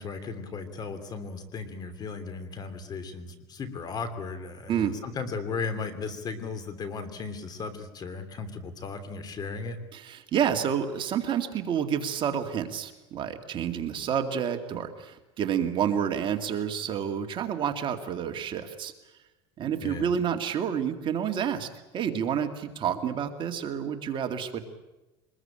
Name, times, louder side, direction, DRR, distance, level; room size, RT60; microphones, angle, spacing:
voice 1, 0.0-9.8 19.8-20.1, left 4 dB, 30° left, 12 dB, 3.1 m, -36 dB
voice 2, 9.9-18.9 19.6-21.7 21.9-24.6, right 8 dB, 40° right, 6 dB, 2.3 m, -29 dB
24.0 x 21.0 x 9.0 m, 1.0 s
supercardioid pair, 130°, 13 cm